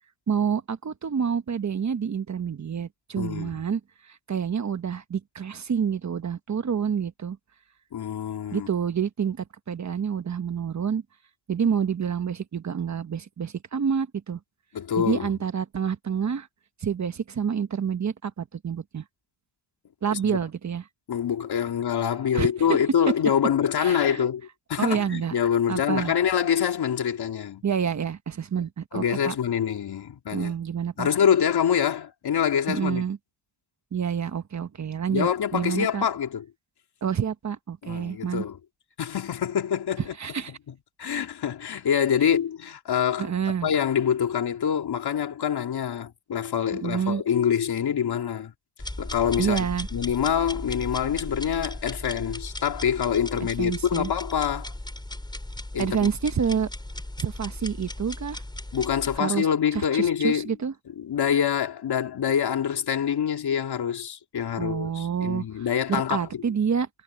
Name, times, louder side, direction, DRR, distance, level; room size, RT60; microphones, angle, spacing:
voice 1, 0.3-7.4 8.5-11.0 11.5-14.4 15.0-16.5 16.8-19.0 20.0-20.8 22.3-22.5 23.8-24.2 24.8-25.4 25.7-26.1 27.6-29.3 30.3-31.1 32.7-33.2 33.9-36.1 37.0-38.4 40.2-40.5 43.2-43.7 46.7-47.2 49.4-49.9 53.6-54.1 55.8-56.7 57.2-58.4 59.2-59.5 59.7-60.7 64.6-66.9, right 7 dB, 40° right, 1.3 m, -28 dB
voice 2, 3.2-3.5 7.9-8.7 14.7-15.3 20.1-20.4 21.1-27.6 28.9-30.5 31.0-33.0 35.1-36.4 37.8-38.6 39.0-40.1 41.0-43.3 43.6-48.5 49.0-49.7 49.9-54.7 55.7-56.1 58.7-60.5 61.0-66.4, left 8 dB, 65° left, 3.1 m, -25 dB
sound 1, 48.8-59.2, left 1 dB, 10° left, 5.7 m, -36 dB
cardioid pair, 95°, 41 cm